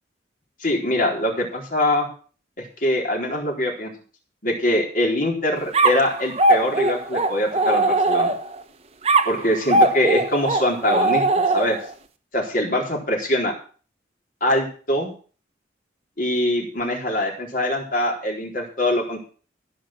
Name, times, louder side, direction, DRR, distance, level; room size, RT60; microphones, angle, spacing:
voice 1, 0.6-2.1 2.8-3.9 4.4-8.3 9.3-11.2 11.5-11.8 12.3-13.5 14.4-15.1 16.2-19.2, left 1 dB, 45° left, 0 dB, 4.0 m, -23 dB
sound 1, 5.7-8.6 9.1-11.9, right 2 dB, 35° right, 1.2 m, -20 dB
15.0 x 6.6 x 7.6 m, 0.39 s
head